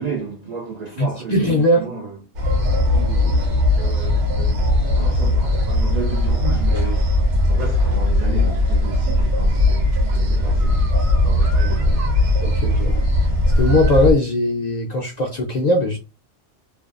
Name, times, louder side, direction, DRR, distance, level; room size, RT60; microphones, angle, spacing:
voice 1, 0.0-2.0 3.7-7.1 7.5-10.9 11.2-12.1, right 4 dB, 60° right, 0.4 m, -32 dB
voice 2, 1.0-1.9 11.7-11.8 12.4-12.9 13.2-13.3 13.5-16.0, left 1 dB, 60° left, 0.4 m, -19 dB
sound 1, 2.4-14.1, left 1 dB, 80° right, 1.1 m, -18 dB
2.5 x 2.3 x 2.4 m
omnidirectional pair, 1.2 m